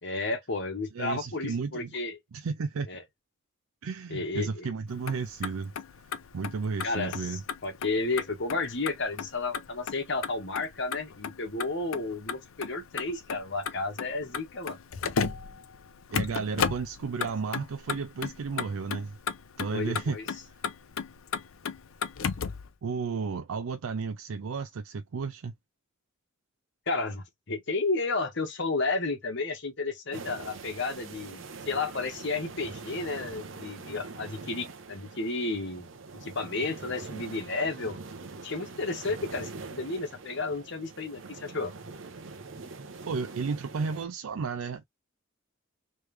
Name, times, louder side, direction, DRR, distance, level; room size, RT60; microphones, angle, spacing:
voice 1, 0.0-2.2 2.9-3.0 4.1-4.7 6.8-14.8 19.7-20.2 26.9-35.9 36.2-38.0 38.4-41.7, left 3 dB, 60° left, 1.3 m, -32 dB
voice 2, 0.9-1.9 2.3-2.9 3.8-5.7 6.3-7.4 16.1-19.2 19.6-20.2 22.8-25.5 43.1-44.8, right 5 dB, 85° right, 0.4 m, -33 dB
Motor vehicle (road), 4.9-22.7, left 6 dB, 75° left, 0.5 m, -36 dB
sound 1, 30.1-44.0, right 4 dB, 65° right, 0.8 m, -43 dB
3.2 x 3.2 x 3.3 m
head